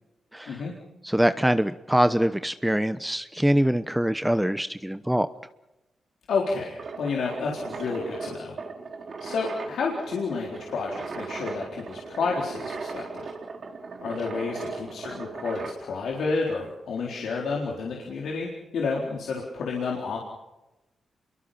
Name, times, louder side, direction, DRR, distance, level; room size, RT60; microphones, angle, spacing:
voice 1, 0.3-0.6 1.0-5.3, equal, 5° right, 11 dB, 1.0 m, -24 dB
voice 2, 6.3-8.5 9.2-13.2 14.0-20.2, left 4 dB, 75° left, -2 dB, 4.1 m, -30 dB
sound 1, 6.7-15.8, right 4 dB, 60° right, 3.7 m, -38 dB
27.5 x 23.0 x 5.8 m, 0.99 s
supercardioid pair, 45°, 0 cm